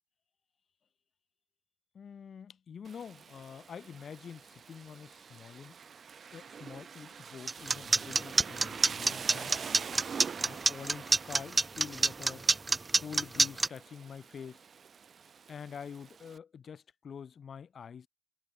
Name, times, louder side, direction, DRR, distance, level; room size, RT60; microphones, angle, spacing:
voice 1, 1.9-5.8 6.3-9.7 10.4-12.4 13.0-14.6 15.5-18.1, left 7 dB, 85° left, 5.0 m, -46 dB
Rain, 2.8-16.4, right 6 dB, 75° right, 4.4 m, -46 dB
sound 1, 7.5-13.7, right 3 dB, 35° right, 1.2 m, -26 dB
cardioid pair, 80°, 0 cm